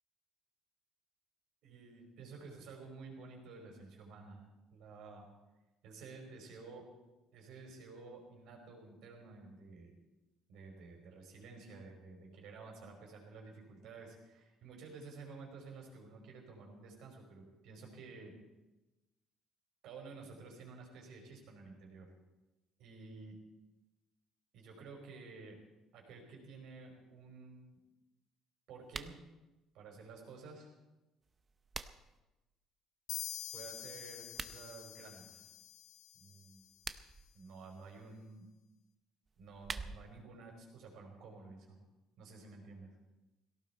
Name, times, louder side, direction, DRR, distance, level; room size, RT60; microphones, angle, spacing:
voice 1, 1.6-4.4 4.7-5.3 5.8-6.9 7.3-9.9 10.5-18.3 19.8-22.1 22.8-23.4 24.5-25.6 25.9-27.8 28.7-29.1 29.7-30.7 33.5-35.5 36.2-36.6 37.3-38.5 39.4-41.8 42.2-42.9, right 4 dB, 70° right, 1 dB, 5.1 m, -52 dB
sound 1, 28.8-29.2 31.2-32.2 34.2-34.6 36.6-37.3 39.3-40.2, right 4 dB, 25° right, 0.7 m, -45 dB
sound 2, 33.1-36.7, left 14 dB, 70° left, 1.4 m, -46 dB
18.0 x 17.5 x 4.5 m, 1.0 s
cardioid pair, 155°, 0 cm